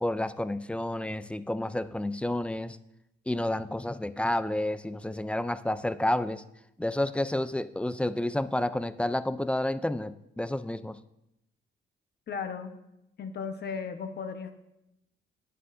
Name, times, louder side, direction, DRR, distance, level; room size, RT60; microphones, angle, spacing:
voice 1, 0.0-2.8 3.3-6.4 6.8-11.0, left 1 dB, 5° left, 13 dB, 0.3 m, -30 dB
voice 2, 12.3-12.7 13.2-14.5, left 6 dB, 55° left, 7 dB, 1.0 m, -35 dB
9.8 x 9.4 x 2.6 m, 0.86 s
cardioid pair, 90°, 20 cm